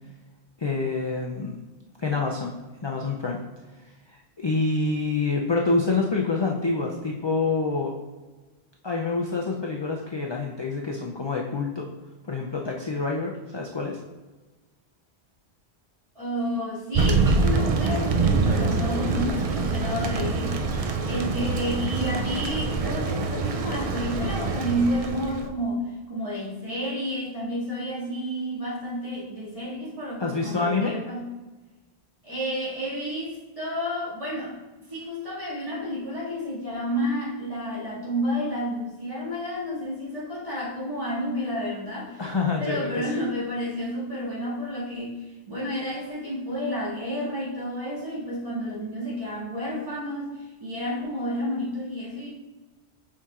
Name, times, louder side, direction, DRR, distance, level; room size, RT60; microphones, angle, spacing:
voice 1, 0.6-1.6 2.0-2.5 2.8-3.4 4.1-8.0 8.8-11.9 12.2-14.0 30.2-31.0 42.2-43.1, left 3 dB, 40° left, -1 dB, 0.4 m, -27 dB
voice 2, 16.1-31.2 32.2-34.6 34.9-42.2 42.6-52.3, equal, 30° right, -8 dB, 2.2 m, -30 dB
Thunder, 16.9-25.5, right 4 dB, 55° right, 0.4 m, -25 dB
7.2 x 5.7 x 2.4 m, 1.2 s
omnidirectional pair, 1.1 m